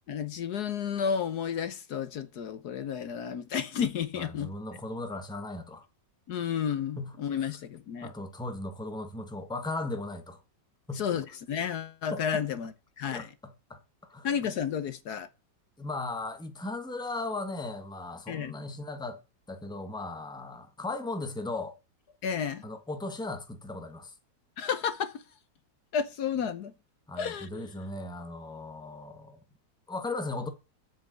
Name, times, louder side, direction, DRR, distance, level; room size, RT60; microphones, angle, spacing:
voice 1, 0.1-4.5 6.3-8.1 10.9-13.3 14.2-15.3 18.3-18.5 22.2-22.6 24.6-25.2 25.9-26.7 27.2-27.7, left 7 dB, 65° left, 1.4 m, -32 dB
voice 2, 4.1-5.9 7.0-7.2 8.0-10.4 10.9-11.2 12.1-12.4 13.1-13.3 13.7-13.8 14.1-14.3 15.8-19.2 19.5-21.7 22.6-24.1 27.1-29.4 29.9-30.5, left 2 dB, 5° left, 1.2 m, -37 dB
7.8 x 7.6 x 7.6 m
omnidirectional pair, 1.9 m